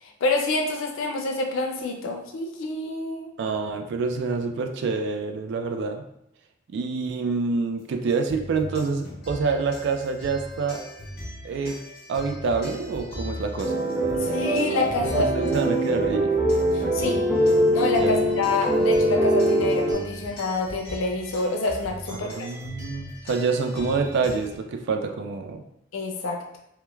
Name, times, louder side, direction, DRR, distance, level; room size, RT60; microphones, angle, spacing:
voice 1, 0.0-3.3 14.1-15.3 16.7-17.2 17.7-22.5 25.9-26.4, left 2 dB, 85° left, 2 dB, 0.4 m, -27 dB
voice 2, 3.4-6.1 6.7-10.8 11.4-11.8 12.1-13.7 15.2-16.3 18.0-18.2 22.2-25.6, right 4 dB, 60° right, 5 dB, 0.3 m, -27 dB
sound 1, 8.1-24.6, equal, 55° left, 0.8 m, -39 dB
sound 2, 13.6-19.9, right 1 dB, 5° right, 0.5 m, -23 dB
3.0 x 2.1 x 2.2 m, 0.78 s
head